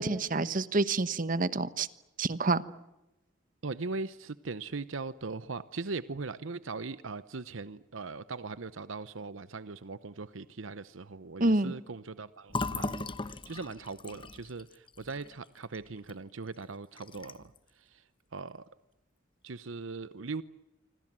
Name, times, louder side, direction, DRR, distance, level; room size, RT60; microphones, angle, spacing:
voice 1, 0.0-1.9 2.2-2.6 11.4-11.7, right 2 dB, 45° right, 15 dB, 1.2 m, -28 dB
voice 2, 3.6-17.5 17.8-18.0 18.3-18.6 19.4-20.4, right 3 dB, 90° right, 15 dB, 0.8 m, -40 dB
Fill (with liquid), 12.5-16.2 16.5-16.6 17.0-17.6, left 3 dB, 25° left, 1.0 m, -38 dB
27.0 x 25.5 x 7.6 m, 0.95 s
head